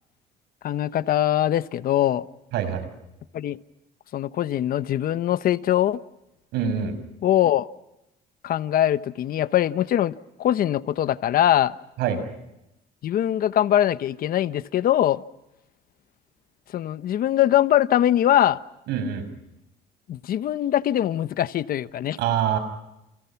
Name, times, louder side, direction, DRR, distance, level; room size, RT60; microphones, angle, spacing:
voice 1, 0.6-2.3 3.3-3.6 4.1-6.0 7.2-7.7 8.4-11.8 13.0-15.2 16.7-18.6 20.1-22.2, left 12 dB, 60° left, 1.1 m, -22 dB
voice 2, 2.5-2.9 6.5-7.0 12.0-12.2 18.9-19.3 22.2-22.6, right 8 dB, 85° right, 6.3 m, -25 dB
30.0 x 28.5 x 5.9 m
cardioid pair, 110°, 17 cm